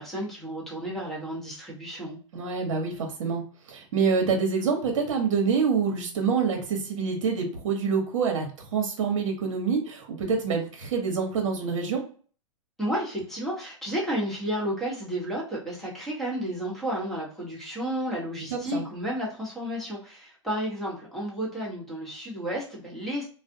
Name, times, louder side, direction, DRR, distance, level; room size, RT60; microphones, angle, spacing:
voice 1, 0.0-2.2 12.8-23.2, equal, ahead, -5 dB, 1.0 m, -32 dB
voice 2, 2.3-3.4 3.7-12.1 18.5-18.8, right 5 dB, 70° right, 2 dB, 0.9 m, -26 dB
2.4 x 2.0 x 2.6 m, 0.42 s
hypercardioid pair, 135°, 17 cm